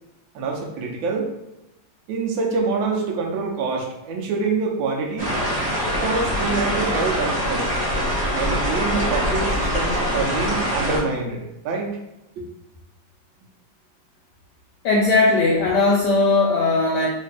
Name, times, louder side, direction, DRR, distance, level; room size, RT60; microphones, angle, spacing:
voice 1, 0.3-1.3 2.1-5.3 6.0-7.6 8.3-12.0 12.4-12.5, right 4 dB, 75° right, 1 dB, 1.4 m, -26 dB
sound 1, 5.2-11.0, equal, 35° right, 1.0 m, -23 dB
voice 2, 14.8-17.1, left 3 dB, 75° left, -2 dB, 1.0 m, -18 dB
3.2 x 2.7 x 3.4 m, 0.90 s
omnidirectional pair, 2.2 m